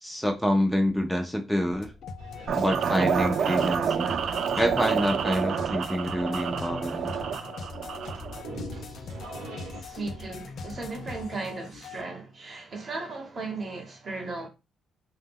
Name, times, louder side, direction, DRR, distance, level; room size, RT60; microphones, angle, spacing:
voice 1, 0.0-1.9 2.6-4.2 4.5-7.1, equal, ahead, 0.4 m, -27 dB
sound 1, 1.7-12.0, left 4 dB, 65° left, 0.4 m, -41 dB
sound 2, 2.2-9.8, right 1 dB, 85° right, 0.7 m, -45 dB
sound 3, 2.5-8.4, right 7 dB, 60° right, 0.3 m, -28 dB
voice 2, 9.7-14.5, right 3 dB, 40° right, 0.8 m, -36 dB
2.1 x 2.1 x 3.4 m
cardioid pair, 90°, 0 cm